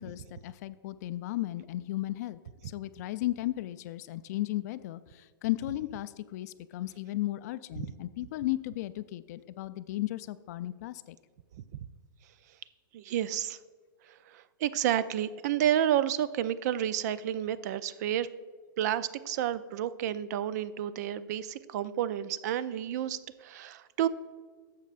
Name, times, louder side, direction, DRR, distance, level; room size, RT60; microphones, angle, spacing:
voice 1, 0.0-11.2, left 16 dB, 50° left, 15 dB, 0.4 m, -35 dB
voice 2, 12.9-13.6 14.3-18.3 18.8-24.1, right 11 dB, 50° right, 16 dB, 0.4 m, -30 dB
12.0 x 7.4 x 2.5 m, 1.5 s
hypercardioid pair, 130°, 12 cm